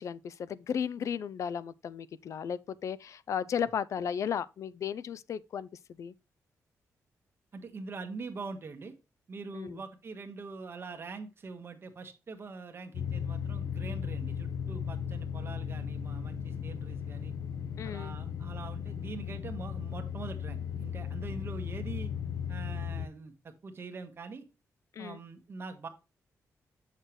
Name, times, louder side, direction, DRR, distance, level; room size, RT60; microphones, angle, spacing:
voice 1, 0.0-5.7 6.0-6.1 9.5-9.8 17.8-18.1 25.0-25.2, left 8 dB, 60° left, 0.4 m, -35 dB
voice 2, 7.5-8.9 9.3-17.3 17.8-22.1 22.5-24.4 25.0-25.9, right 4 dB, 45° right, 1.4 m, -43 dB
sound 1, 12.9-23.1, left 8 dB, 85° left, 0.8 m, -36 dB
7.7 x 6.6 x 3.2 m
cardioid pair, 125°, 6 cm